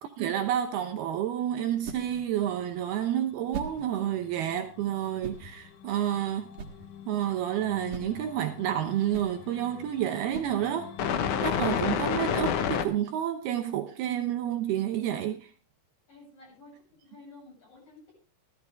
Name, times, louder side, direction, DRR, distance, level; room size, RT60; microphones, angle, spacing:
voice 1, 0.0-6.5 7.1-10.9 11.4-15.4, right 11 dB, 75° right, 2.5 m, -29 dB
sound 1, 0.6-11.1, right 5 dB, 55° right, 2.6 m, -45 dB
sound 2, 4.8-4.9 6.2-7.1 7.4-12.8, left 8 dB, 85° left, 1.7 m, -31 dB
voice 2, 15.1-15.4 16.1-18.1, left 2 dB, 40° left, 9.4 m, -51 dB
15.5 x 13.0 x 3.4 m
omnidirectional pair, 5.2 m